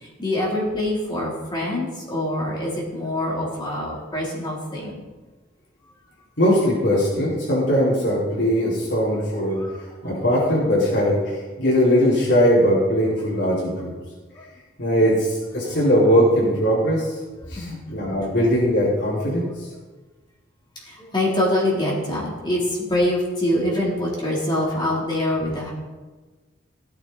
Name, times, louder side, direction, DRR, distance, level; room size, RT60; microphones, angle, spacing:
voice 1, 0.0-4.9 9.6-9.8 15.6-15.8 17.4-17.8 20.8-25.7, left 1 dB, 25° left, -4 dB, 3.6 m, -25 dB
voice 2, 6.4-9.6 10.0-13.9 14.8-17.2 17.5-19.7, equal, 75° left, -9 dB, 5.1 m, -20 dB
18.0 x 9.0 x 4.2 m, 1.3 s
head